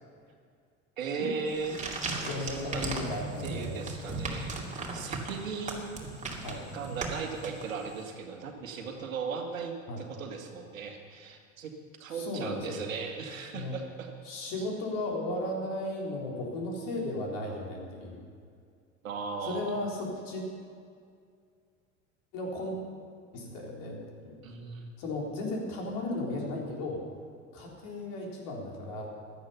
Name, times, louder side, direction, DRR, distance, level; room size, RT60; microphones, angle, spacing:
voice 1, 1.0-1.8 2.4-2.9 3.4-4.5 4.9-6.1 6.7-11.7 12.0-14.1 14.6-14.7 19.0-19.8 24.4-24.8, right 5 dB, 75° right, 4 dB, 1.8 m, -37 dB
sound 1, 1.5-8.0, right 3 dB, 20° right, 2.5 m, -37 dB
voice 2, 2.2-3.8 6.4-6.6 9.9-10.0 12.1-12.8 13.5-13.8 14.3-18.2 19.4-20.4 22.3-22.8 23.3-24.3 25.0-27.0 27.5-29.1, left 2 dB, 55° left, -1 dB, 3.8 m, -35 dB
16.0 x 11.5 x 5.7 m, 2.2 s
figure-of-eight pair, 70°, 41 cm